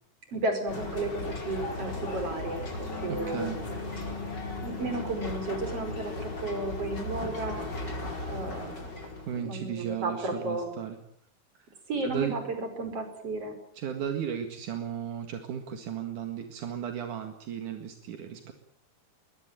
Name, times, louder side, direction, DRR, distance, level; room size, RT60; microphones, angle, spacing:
voice 1, 0.3-3.5 4.6-7.7 8.3-8.8 9.4-10.7 11.9-12.4 12.8-13.6, right 2 dB, 50° right, 7 dB, 6.4 m, -33 dB
sound 1, 0.7-9.5, left 2 dB, 35° left, 5.1 m, -36 dB
voice 2, 3.1-3.6 9.3-11.0 12.0-12.3 13.7-18.5, right 9 dB, 80° right, 6 dB, 3.4 m, -35 dB
22.0 x 21.5 x 9.1 m, 0.67 s
omnidirectional pair, 3.5 m